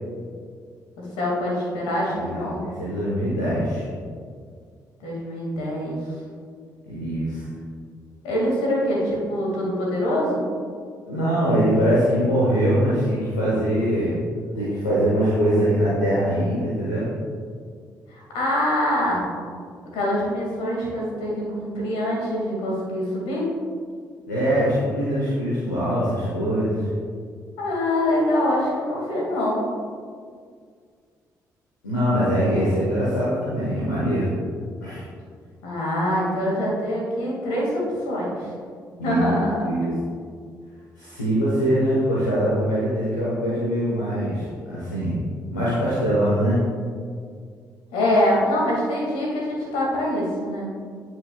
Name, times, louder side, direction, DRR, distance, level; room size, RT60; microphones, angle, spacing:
voice 1, 1.0-2.6 5.0-6.0 8.2-10.4 18.1-19.4 19.9-23.4 27.6-29.7 32.3-32.7 35.6-38.5 39.0-39.6 47.9-50.7, left 1 dB, 65° left, -3 dB, 2.2 m, -24 dB
voice 2, 2.1-3.8 6.9-7.4 11.0-14.1 14.5-17.1 24.3-26.8 31.8-34.3 34.8-35.0 39.0-39.9 41.0-45.2 45.5-46.6, equal, 85° left, -9 dB, 1.3 m, -22 dB
16.5 x 6.4 x 2.4 m, 2.1 s
figure-of-eight pair, 40°, 10 cm